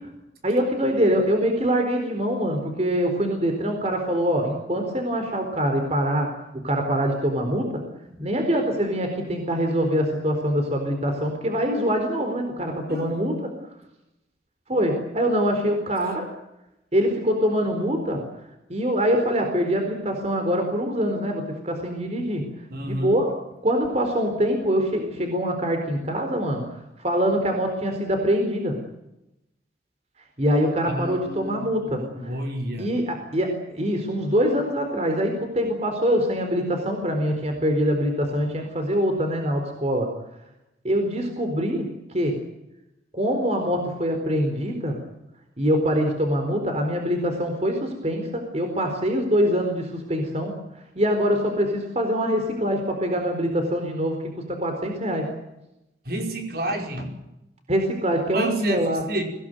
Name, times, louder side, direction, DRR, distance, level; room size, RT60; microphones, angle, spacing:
voice 1, 0.4-6.3 6.6-7.8 8.2-13.5 14.7-16.3 16.9-18.2 18.7-22.5 22.8-23.3 23.6-26.6 27.0-28.8 30.4-32.4 32.8-40.1 40.8-41.9 42.1-42.4 43.1-44.9 45.6-50.6 50.9-55.3 57.7-59.0, equal, 35° right, 4 dB, 4.1 m, -24 dB
voice 2, 22.7-23.2 30.9-32.9 56.0-57.2 58.3-59.2, right 1 dB, 55° right, 3 dB, 5.2 m, -30 dB
24.5 x 17.5 x 9.4 m, 0.90 s
head